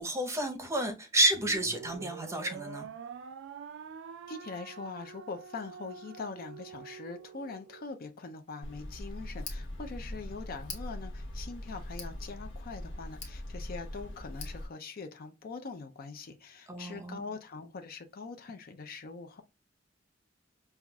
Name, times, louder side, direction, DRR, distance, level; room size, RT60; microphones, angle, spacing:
voice 1, 0.0-2.9 16.7-17.2, right 1 dB, 15° right, 0.7 m, -30 dB
sound 1, 1.3-7.8, right 6 dB, 65° right, 0.3 m, -46 dB
voice 2, 4.3-19.4, left 4 dB, 50° left, 0.5 m, -43 dB
Tick, 8.6-14.7, left 1 dB, 65° left, 1.0 m, -41 dB
5.6 x 2.4 x 2.2 m
head